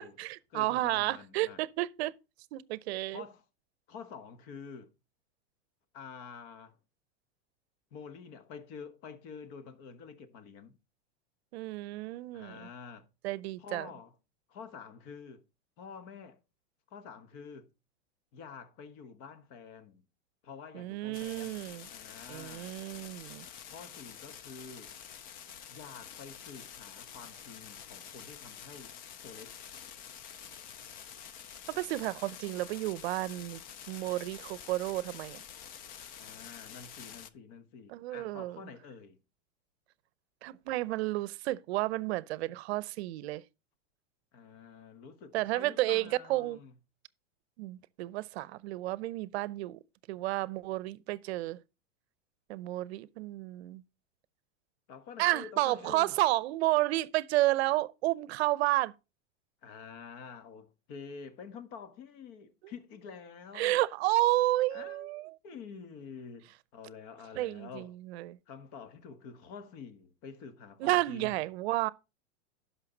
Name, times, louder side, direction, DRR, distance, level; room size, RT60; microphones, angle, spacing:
voice 1, 0.0-2.1 2.5-3.2 11.5-12.7 13.2-13.9 20.7-21.9 22.3-23.5 31.7-33.6 33.9-35.4 37.9-38.6 40.4-43.4 45.3-46.6 47.6-49.8 50.1-51.6 52.5-53.8 55.2-58.9 63.5-65.3 67.4-68.4 70.8-71.9, right 17 dB, 60° right, 0.7 m, -31 dB
voice 2, 0.5-1.6 3.1-3.4 3.9-4.9 5.9-6.8 7.9-10.7 12.3-13.1 13.6-14.1 14.5-15.4 15.8-16.4 16.9-17.7 18.3-20.0 20.4-21.6 21.9-22.7 23.6-24.9 25.7-28.9 29.2-29.6 36.1-39.2 44.3-46.7 54.9-56.2 59.6-63.8 64.7-67.9 68.5-71.4, left 5 dB, 45° left, 1.3 m, -48 dB
sound 1, 21.1-37.3, left 8 dB, 25° left, 0.4 m, -48 dB
11.5 x 5.8 x 3.9 m
supercardioid pair, 145°, 36 cm